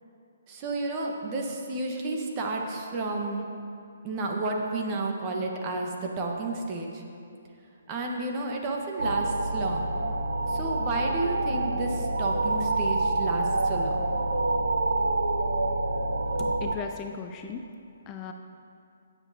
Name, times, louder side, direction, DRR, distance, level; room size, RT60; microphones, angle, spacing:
voice 1, 0.5-3.5 4.0-7.0 7.9-9.9 10.5-14.0, right 2 dB, 30° right, 1 dB, 1.2 m, -31 dB
sound 1, 9.0-16.7, right 2 dB, 85° right, 0.6 m, -27 dB
voice 2, 16.4-17.7 18.1-18.3, left 6 dB, 25° left, 5 dB, 0.4 m, -37 dB
16.5 x 7.2 x 2.8 m, 2.6 s
hypercardioid pair, 140°, 0 cm